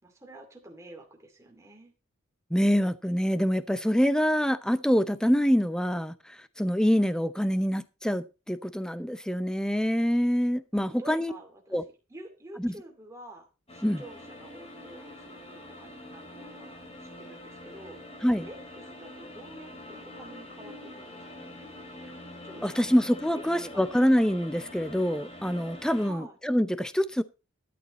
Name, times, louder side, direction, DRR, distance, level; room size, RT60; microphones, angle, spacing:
voice 1, 0.0-1.9 11.0-11.8 12.1-18.0 18.4-21.6 22.4-23.0 23.3-24.1 26.0-26.4, right 1 dB, 15° right, 2.4 m, -48 dB
voice 2, 2.5-11.3 11.7-11.8 12.6-12.7 13.8-14.0 18.2-18.5 22.6-27.2, equal, 5° left, 0.6 m, -25 dB
sound 1, 13.7-26.1, left 1 dB, 30° left, 2.5 m, -45 dB
13.0 x 9.5 x 4.1 m
head